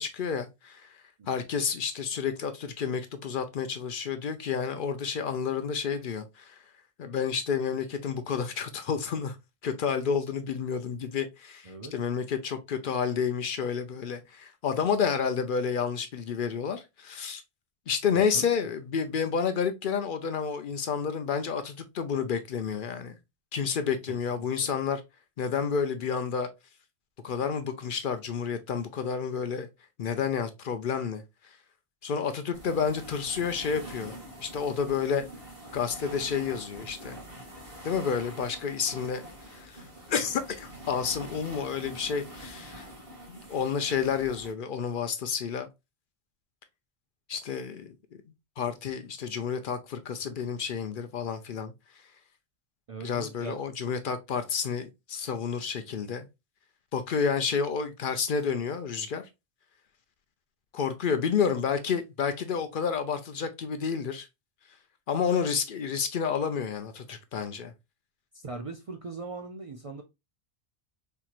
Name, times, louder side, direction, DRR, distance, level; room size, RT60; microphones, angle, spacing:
voice 1, 0.0-6.6 7.0-9.4 9.6-17.4 17.9-23.2 23.5-25.0 25.4-26.5 27.2-29.7 30.0-31.6 32.0-35.2 35.7-37.2 37.8-42.9 43.3-45.7 47.3-47.9 48.6-51.7 53.0-56.3 56.9-59.3 60.7-64.3 65.1-67.7, left 6 dB, 60° left, 0.7 m, -30 dB
voice 2, 18.1-18.5 24.1-24.7 52.9-53.6 68.3-70.0, right 3 dB, 45° right, 0.4 m, -40 dB
sound 1, 32.5-44.5, right 1 dB, 65° right, 2.2 m, -45 dB
4.4 x 2.9 x 2.3 m
omnidirectional pair, 1.1 m